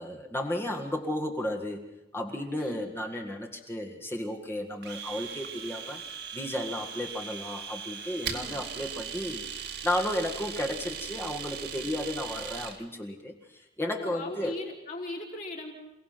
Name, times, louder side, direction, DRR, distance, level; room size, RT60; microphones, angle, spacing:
voice 1, 0.0-1.8 2.1-6.0 6.3-14.6, left 1 dB, 15° left, 0 dB, 1.8 m, -33 dB
Domestic sounds home sounds, 4.8-12.8, right 7 dB, 60° right, 2.1 m, -39 dB
voice 2, 14.0-15.7, left 2 dB, 45° left, -1 dB, 4.8 m, -38 dB
28.5 x 18.0 x 5.9 m, 0.96 s
head